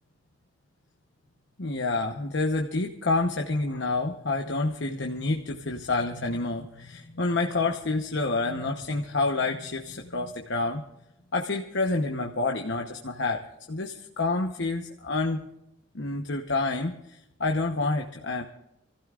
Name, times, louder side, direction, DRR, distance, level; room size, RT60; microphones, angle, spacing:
voice 1, 1.6-10.8 11.3-13.4 13.7-15.4 15.9-18.4, left 3 dB, 65° left, 2 dB, 1.0 m, -28 dB
27.5 x 15.5 x 2.5 m, 0.84 s
head